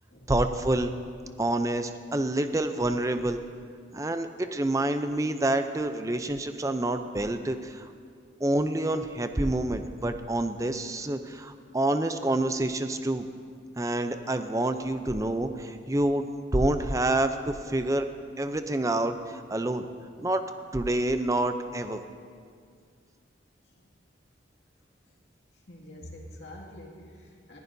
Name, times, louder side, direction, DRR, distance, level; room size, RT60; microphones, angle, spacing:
voice 1, 0.3-1.0 1.4-3.4 3.9-7.9 8.4-13.3 13.8-18.1 18.4-19.8 20.2-20.4 20.7-22.0, right 1 dB, 15° right, 8 dB, 0.5 m, -27 dB
voice 2, 25.7-27.6, left 1 dB, 75° left, -2 dB, 2.2 m, -46 dB
20.5 x 15.5 x 2.7 m, 2.1 s
head